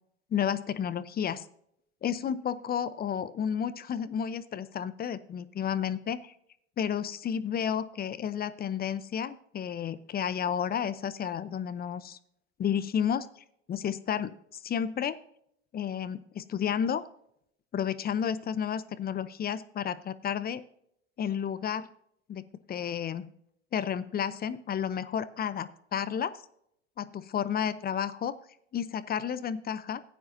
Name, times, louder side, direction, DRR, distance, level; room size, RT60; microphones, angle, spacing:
voice 1, 0.3-1.4 2.0-6.3 6.8-12.2 12.6-13.3 13.7-15.2 15.7-17.0 17.7-20.6 21.2-21.9 22.3-23.3 23.7-26.4 27.0-28.4 28.7-30.0, left 8 dB, 25° left, 15 dB, 0.7 m, -31 dB
15.5 x 9.4 x 2.7 m, 0.71 s
hypercardioid pair, 80°, 34 cm